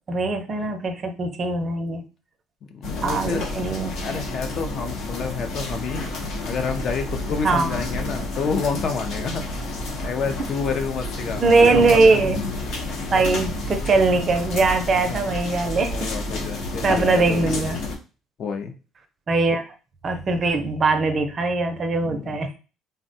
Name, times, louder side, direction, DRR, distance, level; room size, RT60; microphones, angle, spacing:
voice 1, 0.1-2.0 3.0-4.2 7.4-7.8 11.4-12.4 13.1-16.0 16.8-17.8 19.3-19.6 20.0-22.6, right 3 dB, 40° right, 7 dB, 0.5 m, -21 dB
voice 2, 2.7-3.4 4.0-6.1 6.4-9.4 10.0-12.2 12.8-13.0 14.9-15.3 15.8-17.5 18.4-18.7 21.8-22.4, left 5 dB, 50° left, 6 dB, 0.5 m, -29 dB
sound 1, 2.8-18.0, left 2 dB, 80° left, 0.8 m, -30 dB
3.4 x 2.1 x 2.6 m, 0.33 s
cardioid pair, 115°, 0 cm